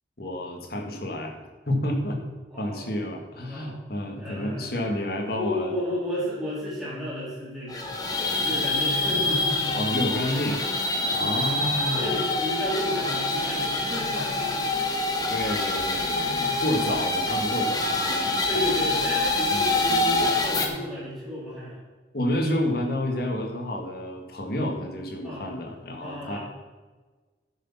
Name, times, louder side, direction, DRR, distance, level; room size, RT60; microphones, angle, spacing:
voice 1, 0.2-1.3 1.7-2.2 2.6-5.7 9.7-10.6 11.1-12.1 14.9-18.6 19.5-19.7 22.1-26.4, left 1 dB, 50° left, 2 dB, 1.9 m, -30 dB
voice 2, 2.5-2.9 3.5-3.8 4.2-5.0 5.4-9.9 11.0-14.7 15.7-16.5 18.5-21.8 25.2-25.5 26.0-26.4, left 1 dB, ahead, -9 dB, 3.4 m, -33 dB
sound 1, 7.7-20.7, left 2 dB, 20° left, 1.1 m, -26 dB
11.5 x 6.5 x 5.7 m, 1.3 s
head